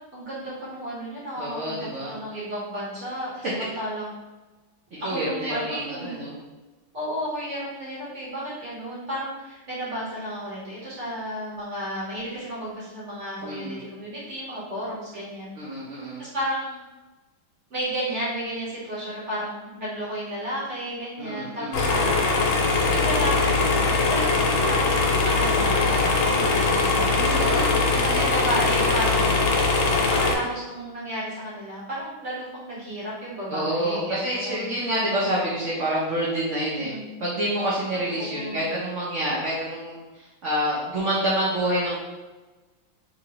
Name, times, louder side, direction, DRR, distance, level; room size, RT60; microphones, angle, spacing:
voice 1, 0.1-1.8 2.1-4.1 5.0-6.2 6.9-15.5 16.2-16.8 17.7-22.2 22.9-29.3 30.1-34.9 36.8-37.1 38.2-38.6, equal, 50° right, -8 dB, 1.0 m, -32 dB
voice 2, 1.4-2.1 5.0-6.4 13.4-13.8 15.6-16.2 21.2-21.9 26.9-28.3 33.5-36.9 37.2-42.0, right 1 dB, 75° right, -7 dB, 0.6 m, -28 dB
sound 1, 21.7-30.3, left 3 dB, 90° left, 1.4 m, -21 dB
3.0 x 2.8 x 2.8 m, 1.2 s
omnidirectional pair, 2.1 m